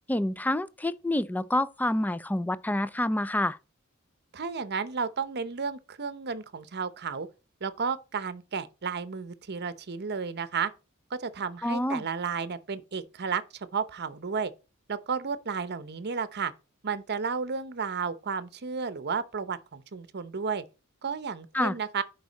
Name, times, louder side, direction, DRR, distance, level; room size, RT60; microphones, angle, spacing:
voice 1, 0.1-3.6 11.6-12.0 21.5-21.8, left 1 dB, 10° left, 0.4 m, -27 dB
voice 2, 4.3-7.3 7.6-10.7 11.1-14.5 14.9-16.5 16.8-20.6 21.0-22.0, right 5 dB, 50° right, 0.8 m, -32 dB
11.0 x 4.7 x 4.0 m
head